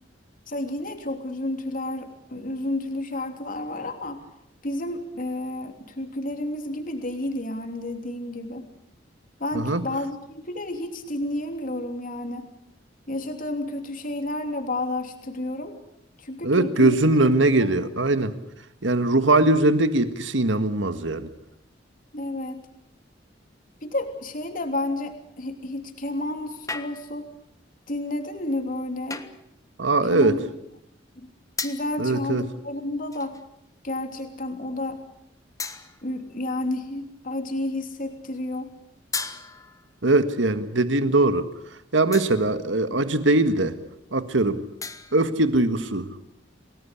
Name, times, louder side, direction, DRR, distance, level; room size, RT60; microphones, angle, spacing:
voice 1, 0.5-4.2 4.6-8.7 9.4-12.5 13.1-15.8 16.2-17.0 17.4-17.7 22.1-22.7 23.8-27.3 27.9-29.3 30.1-30.4 31.2-31.3 31.6-33.3 33.8-35.0 36.0-38.7, left 1 dB, 50° left, 5 dB, 3.2 m, -31 dB
voice 2, 9.5-9.9 16.4-18.3 18.8-21.3 29.8-30.4 32.0-32.4 40.0-41.5 41.9-43.8 44.1-44.6 45.1-46.2, right 2 dB, 85° right, 10 dB, 1.8 m, -21 dB
sound 1, 26.7-27.3 29.1-29.5 31.6-32.0 33.1-33.5 34.2-34.3 35.6-36.2 39.1-39.9 42.1-42.6 44.8-45.3, left 4 dB, 20° left, 1.5 m, -35 dB
29.0 x 19.0 x 8.3 m, 0.78 s
head